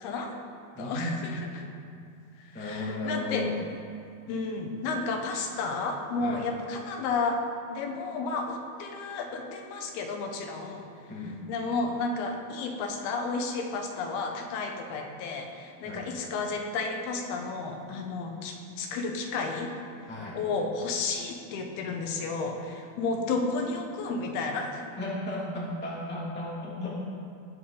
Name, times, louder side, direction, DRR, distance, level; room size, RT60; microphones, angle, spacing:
voice 1, 0.0-0.3 0.8-1.7 2.5-3.5 4.3-7.4 7.7-10.9 11.5-19.8 20.3-24.9, left 3 dB, 90° left, 3 dB, 3.0 m, -32 dB
voice 2, 0.7-1.4 2.5-3.5 6.2-6.5 11.1-11.4 15.8-16.1 20.1-20.4 25.0-27.1, left 1 dB, 5° left, -6 dB, 0.8 m, -34 dB
19.0 x 6.9 x 3.9 m, 2.4 s
omnidirectional pair, 4.4 m